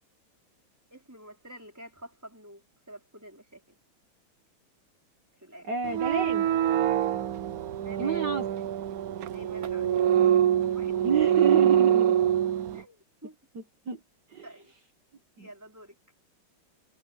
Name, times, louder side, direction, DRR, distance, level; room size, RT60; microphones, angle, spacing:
voice 1, 0.9-3.8 5.3-5.7 7.8-8.3 9.3-11.1 12.7-13.4 14.4-14.7 15.4-15.9, right 1 dB, 5° right, 4.8 m, -48 dB
voice 2, 5.6-6.5 8.0-8.5 11.0-12.2 13.5-14.0 14.3-14.5 15.4-15.5, right 6 dB, 55° right, 2.0 m, -29 dB
sound 1, 5.8-12.8, right 10 dB, 80° right, 0.8 m, -25 dB
omnidirectional pair, 2.4 m